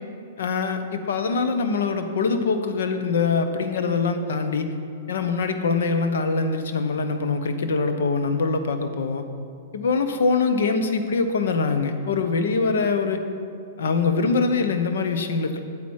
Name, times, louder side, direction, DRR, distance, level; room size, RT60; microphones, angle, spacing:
voice 1, 0.4-4.7 5.1-9.2 9.7-13.2 13.8-15.6, left 4 dB, 75° left, 8 dB, 0.9 m, -23 dB
8.8 x 8.3 x 4.7 m, 2.4 s
hypercardioid pair, 120°, 0 cm